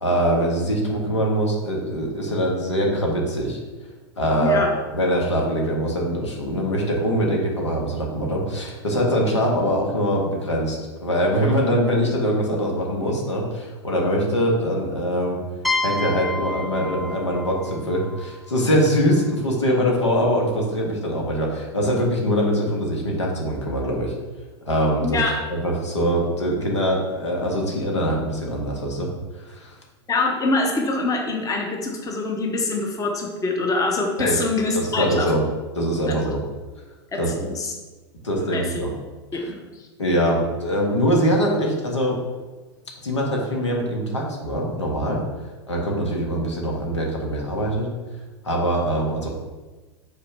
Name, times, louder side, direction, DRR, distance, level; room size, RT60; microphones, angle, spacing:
voice 1, 0.0-3.6 4.2-4.7 4.9-15.4 15.8-24.1 24.6-25.2 25.5-29.1 29.4-29.8 34.2-34.4 34.7-35.4 35.7-36.4 37.2-37.3 38.2-38.9 39.3-39.5 40.0-42.2 43.0-45.2 45.7-47.9 48.4-49.3, equal, 85° left, -1 dB, 1.7 m, -23 dB
voice 2, 4.4-4.8 25.0-25.4 30.1-35.3 36.1-36.2 37.1-37.7 38.4-38.8 39.3-39.9, left 3 dB, 25° left, 1 dB, 1.1 m, -25 dB
sound 1, 15.6-19.3, left 2 dB, ahead, 0.6 m, -30 dB
5.5 x 4.4 x 5.6 m, 1.2 s
figure-of-eight pair, 90°, 15 cm